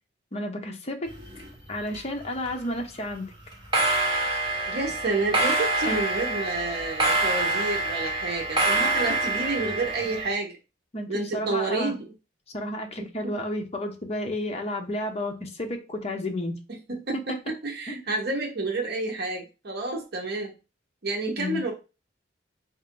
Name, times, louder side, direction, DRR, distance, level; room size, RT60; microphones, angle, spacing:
voice 1, 0.3-1.1 1.7-3.3 5.9-6.0 10.9-11.9 12.5-16.5 17.1-17.4 17.9-18.0 21.4-21.6, left 1 dB, 35° left, 0.7 m, -31 dB
sound 1, 1.1-2.0 2.2-2.7 3.5-10.3, right 2 dB, 25° right, 1.4 m, -26 dB
voice 2, 4.7-10.5 11.1-12.0 13.2-13.3 16.9-20.5 21.0-21.7, right 3 dB, 60° right, 0.8 m, -29 dB
4.3 x 2.5 x 3.7 m
head